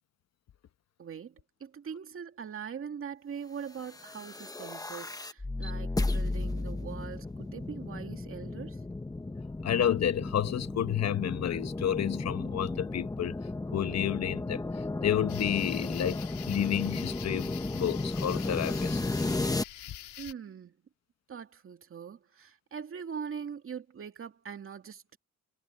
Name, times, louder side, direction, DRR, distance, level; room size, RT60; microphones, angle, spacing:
voice 1, 1.0-8.8 20.2-20.7 21.3-25.2, right 7 dB, 45° right, 2.3 m, -42 dB
sound 1, 3.9-19.6, left 2 dB, 10° left, 1.1 m, -34 dB
voice 2, 9.6-13.3 13.7-19.0, left 10 dB, 60° left, 1.2 m, -30 dB
sound 2, 15.3-20.3, left 12 dB, 90° left, 3.6 m, -46 dB
cardioid pair, 110°, 29 cm